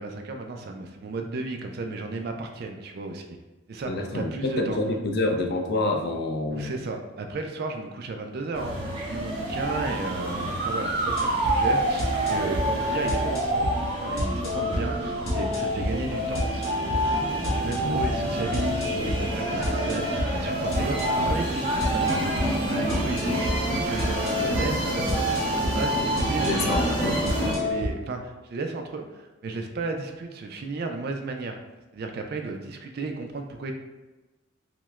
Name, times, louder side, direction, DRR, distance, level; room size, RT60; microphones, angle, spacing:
voice 1, 0.0-3.2 3.7-4.8 6.5-16.7 17.5-22.2 22.8-25.5 25.7-27.0 27.6-31.6 31.9-33.7, right 3 dB, 50° right, 4 dB, 0.4 m, -34 dB
voice 2, 3.9-6.8 17.8-18.1 26.4-27.2, left 2 dB, 50° left, 3 dB, 0.5 m, -27 dB
sound 1, 8.5-27.5, right 1 dB, 25° right, 1.0 m, -29 dB
sound 2, 11.0-27.9, equal, 85° left, 1.3 m, -29 dB
5.8 x 2.1 x 2.4 m, 1.1 s
head